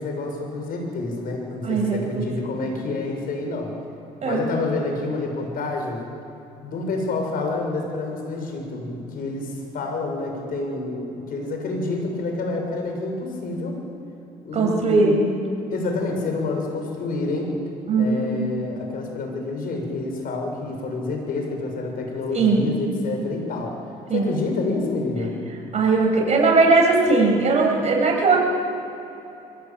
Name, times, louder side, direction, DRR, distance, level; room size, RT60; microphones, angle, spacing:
voice 1, 0.0-3.8 4.2-6.0 6.6-13.8 14.4-15.3 15.7-17.6 18.0-23.8 24.1-25.4, left 3 dB, 60° left, 3 dB, 6.7 m, -28 dB
voice 2, 1.6-2.3 4.2-4.4 14.5-15.2 17.9-18.3 22.3-22.6 24.1-24.3 25.7-28.4, right 3 dB, 40° right, -1 dB, 7.9 m, -19 dB
23.5 x 18.5 x 9.2 m, 3.0 s
cardioid pair, 110°, 17 cm